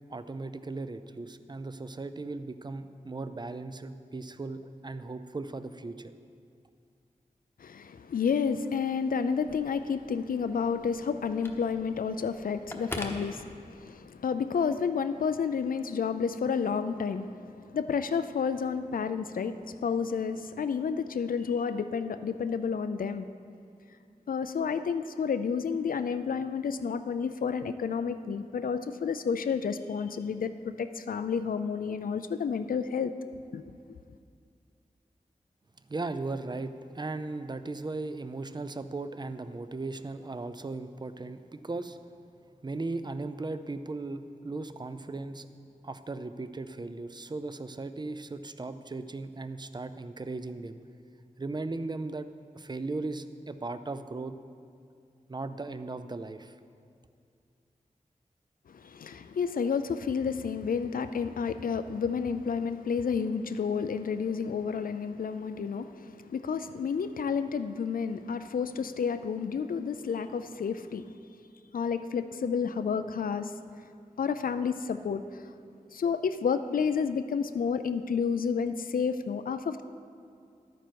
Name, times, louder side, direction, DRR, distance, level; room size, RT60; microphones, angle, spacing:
voice 1, 0.1-6.1 35.9-42.0 42.6-45.5 45.8-50.8 51.4-52.3 52.5-54.3 55.3-56.6, right 3 dB, 30° right, 11 dB, 0.5 m, -37 dB
voice 2, 7.6-23.3 24.3-33.1 33.5-33.7 58.7-71.1 71.7-73.5 74.2-75.4 75.9-79.8, left 6 dB, 90° left, 10 dB, 0.4 m, -30 dB
Telephone, 9.3-14.1, left 1 dB, 15° left, 1.0 m, -44 dB
11.5 x 9.2 x 4.6 m, 2.3 s
wide cardioid pair, 100°, 14 cm